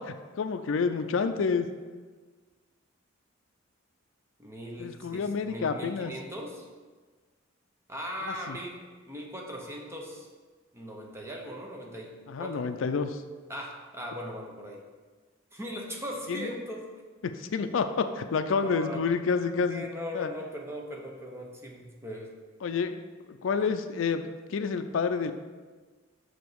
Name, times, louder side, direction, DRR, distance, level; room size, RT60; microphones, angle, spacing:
voice 1, 0.0-1.7 4.8-6.1 8.3-8.6 12.3-13.2 16.3-16.5 17.2-19.8 20.1-20.3 22.6-23.0 23.3-25.3, left 5 dB, 70° left, 8 dB, 0.4 m, -29 dB
voice 2, 4.4-6.7 7.9-8.8 9.1-10.3 10.7-12.7 13.5-14.8 15.5-16.8 18.6-19.0 19.7-22.3, equal, 15° right, -1 dB, 0.9 m, -39 dB
6.2 x 5.1 x 4.7 m, 1.4 s
head